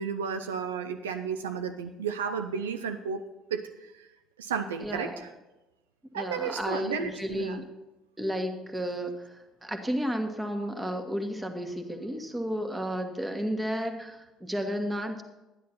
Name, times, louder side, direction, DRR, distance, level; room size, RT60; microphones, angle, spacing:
voice 1, 0.0-4.1 4.4-5.3 6.1-7.6, right 6 dB, 75° right, 7 dB, 0.4 m, -33 dB
voice 2, 4.8-5.2 6.1-7.7 8.2-15.2, equal, 15° right, 5 dB, 1.5 m, -32 dB
11.5 x 10.0 x 4.3 m, 1.0 s
figure-of-eight pair, 55°, 0 cm